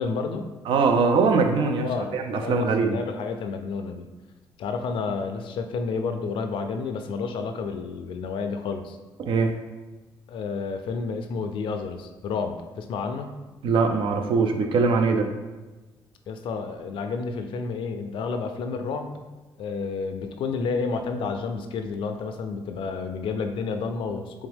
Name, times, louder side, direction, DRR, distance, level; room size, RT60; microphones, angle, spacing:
voice 1, 0.0-0.5 1.8-4.1 4.6-9.0 10.3-13.3 16.3-19.1 19.6-24.5, left 4 dB, 70° left, 6 dB, 0.4 m, -30 dB
voice 2, 0.7-3.0 9.2-9.5 13.6-15.3, right 4 dB, 70° right, 5 dB, 0.5 m, -22 dB
3.5 x 3.5 x 3.4 m, 1.2 s
cardioid pair, 85°, 9 cm